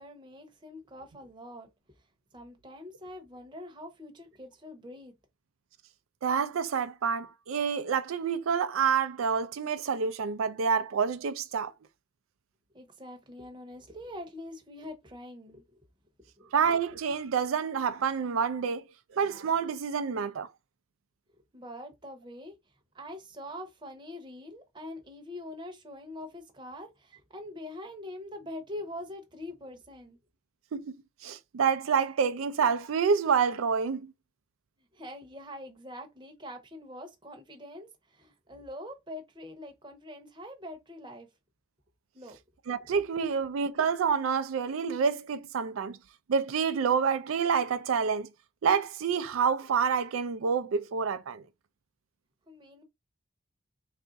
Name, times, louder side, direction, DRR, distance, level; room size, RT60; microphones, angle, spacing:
voice 1, 0.0-1.7 2.3-5.1 12.7-15.6 16.4-16.5 21.5-22.5 22.9-30.2 34.9-41.3 42.1-42.4 42.8-43.0 52.5-52.8, left 1 dB, 25° right, 0.8 m, -44 dB
voice 2, 6.2-11.7 16.5-18.8 19.1-20.5 30.7-31.0 31.2-34.1 42.7-46.0 46.3-48.3 48.6-51.4, right 6 dB, 85° right, 0.4 m, -28 dB
3.4 x 2.5 x 3.9 m
head